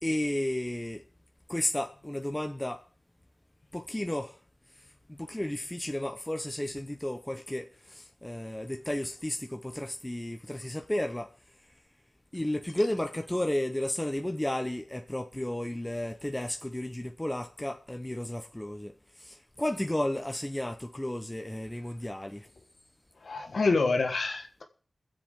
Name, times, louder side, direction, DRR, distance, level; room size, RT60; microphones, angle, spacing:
voice 1, 0.0-1.0 1.5-2.8 3.7-4.4 4.8-11.3 12.3-22.5, left 1 dB, 15° left, 0.9 m, -33 dB
voice 2, 23.2-24.6, left 3 dB, 80° left, 1.5 m, -27 dB
22.5 x 7.5 x 3.7 m
cardioid pair, 40°, 0 cm